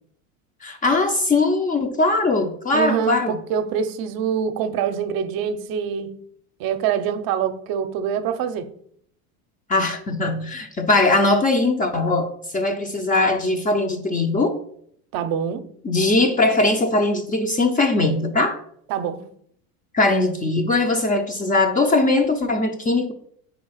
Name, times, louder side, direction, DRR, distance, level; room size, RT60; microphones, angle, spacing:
voice 1, 0.6-3.4 9.7-14.6 15.8-18.6 19.9-23.1, left 2 dB, 20° left, 0.6 m, -20 dB
voice 2, 2.7-6.1 6.6-8.7 15.1-15.6 18.9-19.2, right 8 dB, 50° right, 0.7 m, -25 dB
4.7 x 4.3 x 5.5 m
supercardioid pair, 105°, 45 cm